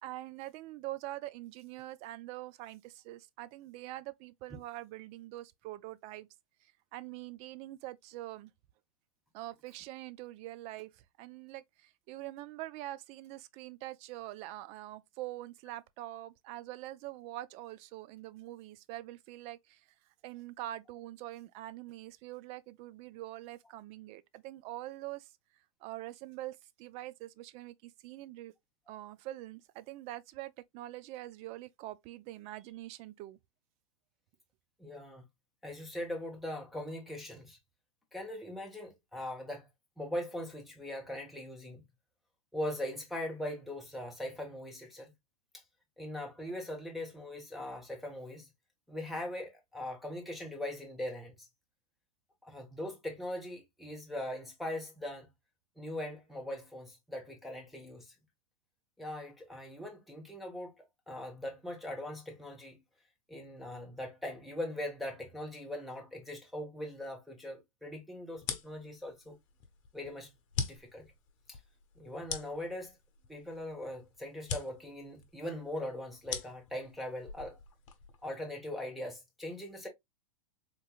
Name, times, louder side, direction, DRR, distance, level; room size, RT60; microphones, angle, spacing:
voice 1, 0.0-6.3 6.6-8.5 9.3-19.9 20.2-25.3 25.8-28.5 28.9-33.4, right 15 dB, 35° right, 0.4 m, -44 dB
voice 2, 34.8-35.2 35.6-37.6 38.1-39.7 40.0-41.8 42.5-45.1 46.0-48.5 48.9-51.5 52.4-55.3 55.8-58.1 59.0-62.8 63.3-69.4 69.9-70.3 70.6-71.1 71.5-71.6 72.0-73.0 73.3-77.6 78.2-79.9, left 1 dB, ahead, 0.9 m, -40 dB
sound 1, 68.4-78.2, left 6 dB, 55° left, 0.8 m, -42 dB
3.8 x 2.7 x 2.3 m
hypercardioid pair, 105°, 19 cm